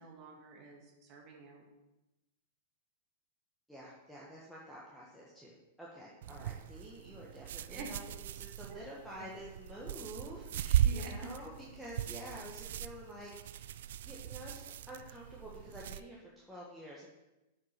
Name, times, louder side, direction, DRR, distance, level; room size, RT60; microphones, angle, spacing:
voice 1, 0.0-1.7 6.3-6.5 7.7-7.9 8.7-8.8 10.8-11.1 12.1-12.2, right 3 dB, 35° right, 1 dB, 1.8 m, -49 dB
voice 2, 3.7-13.7 14.0-17.1, equal, ahead, -6 dB, 1.4 m, -49 dB
sound 1, 6.2-16.0, right 11 dB, 70° right, 0.3 m, -37 dB
7.7 x 5.8 x 5.8 m, 0.99 s
hypercardioid pair, 130°, 0 cm